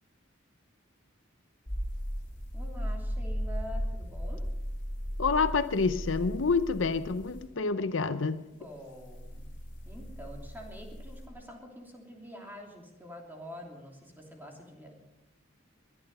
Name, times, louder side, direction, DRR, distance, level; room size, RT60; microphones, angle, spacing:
sound 1, 1.7-7.4 8.9-11.3, equal, 40° left, 3.0 m, -36 dB
voice 1, 2.5-4.5 8.5-9.5 9.8-14.9, equal, 10° right, 0 dB, 3.0 m, -46 dB
voice 2, 5.2-8.4, left 4 dB, 65° left, 12 dB, 0.7 m, -28 dB
21.5 x 11.0 x 5.5 m, 0.94 s
head